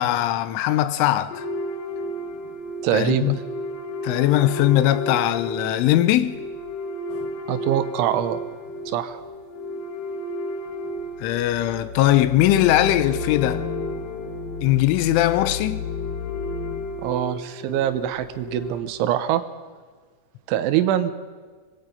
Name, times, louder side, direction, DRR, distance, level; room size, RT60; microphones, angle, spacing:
voice 1, 0.0-1.5 2.9-3.4 4.0-6.4 11.2-13.6 14.6-15.9, left 14 dB, 85° left, 3.3 m, -20 dB
sound 1, 1.3-18.8, left 2 dB, 60° left, 2.7 m, -32 dB
voice 2, 2.8-3.3 7.5-8.4 8.9-9.2 17.0-19.4 20.5-21.1, right 11 dB, 85° right, 3.3 m, -23 dB
25.0 x 19.5 x 5.6 m
omnidirectional pair, 5.6 m